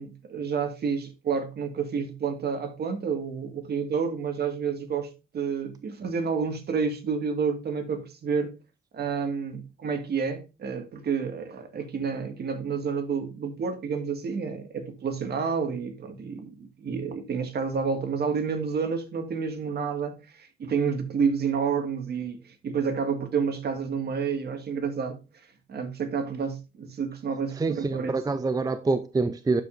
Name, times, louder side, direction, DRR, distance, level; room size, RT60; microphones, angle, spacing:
voice 1, 0.0-8.6 8.9-25.2 25.7-28.1, right 6 dB, 55° right, 1.8 m, -29 dB
voice 2, 27.5-29.6, right 3 dB, 20° right, 0.5 m, -26 dB
12.0 x 5.1 x 2.5 m
cardioid pair, 90°, 20 cm